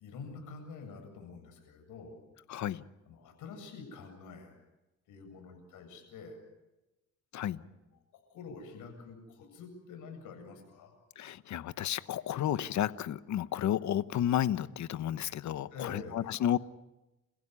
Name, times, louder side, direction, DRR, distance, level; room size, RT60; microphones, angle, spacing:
voice 1, 0.0-2.2 3.1-4.6 5.1-6.4 7.4-7.8 8.3-10.9 15.7-16.3, left 4 dB, 85° left, 4 dB, 7.8 m, -47 dB
voice 2, 2.5-2.8 7.3-7.6 11.2-16.6, left 11 dB, 70° left, 15 dB, 1.0 m, -32 dB
30.0 x 16.0 x 9.7 m, 1.0 s
cardioid pair, 90°, 30 cm